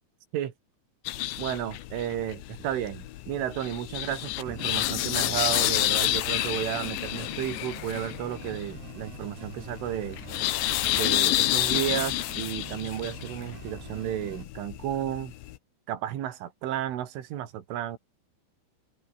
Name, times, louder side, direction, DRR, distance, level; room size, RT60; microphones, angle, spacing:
sound 1, 1.1-15.6, left 15 dB, 75° left, 3.4 m, -30 dB
voice 1, 1.4-10.2 10.9-15.3 15.9-18.0, right 11 dB, 85° right, 4.7 m, -32 dB
sound 2, 4.5-14.4, right 4 dB, 55° right, 9.7 m, -44 dB
open air
omnidirectional pair, 5.5 m